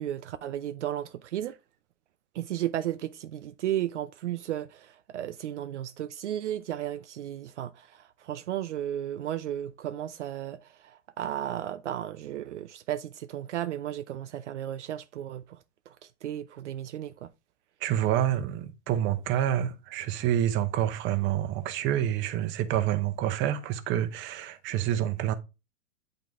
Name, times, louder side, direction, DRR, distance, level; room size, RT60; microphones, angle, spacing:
voice 1, 0.0-1.5 2.3-17.3, right 11 dB, 65° right, 0.6 m, -34 dB
voice 2, 17.8-25.3, right 11 dB, 30° right, 1.0 m, -28 dB
9.0 x 3.9 x 3.5 m
hypercardioid pair, 110°, 38 cm